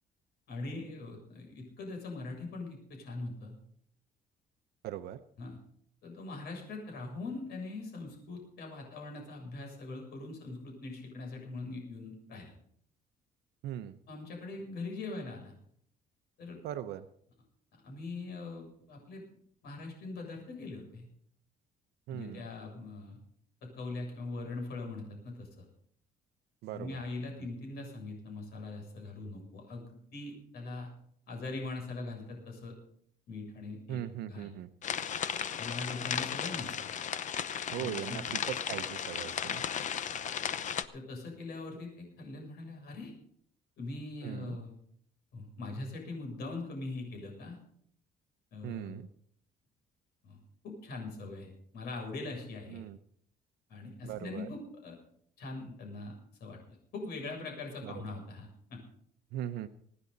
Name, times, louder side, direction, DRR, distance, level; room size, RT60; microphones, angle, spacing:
voice 1, 0.5-3.5 5.4-5.6 6.0-12.5 14.1-15.5 16.4-16.6 17.7-19.2 19.6-21.1 22.1-23.2 23.6-25.7 26.7-30.9 31.3-32.7 33.3-34.5 35.6-36.9 37.8-38.2 40.1-40.2 40.9-43.1 43.8-44.7 45.3-47.6 48.5-49.0 50.2-50.4 50.6-52.8 53.7-55.0 55.4-56.1 56.4-58.8, left 3 dB, 70° left, 1 dB, 7.0 m, -42 dB
voice 2, 4.8-5.2 13.6-14.0 16.6-17.1 22.1-22.5 26.6-27.0 27.4-27.5 33.9-34.7 37.7-39.6 44.2-44.6 48.6-49.1 52.7-53.0 54.0-54.5 57.8-57.9 59.3-59.7, right 11 dB, 80° right, 9 dB, 0.8 m, -39 dB
sound 1, 34.8-40.8, left 8 dB, 45° left, 0.8 m, -35 dB
24.5 x 9.9 x 4.0 m, 0.65 s
cardioid pair, 110°, 17 cm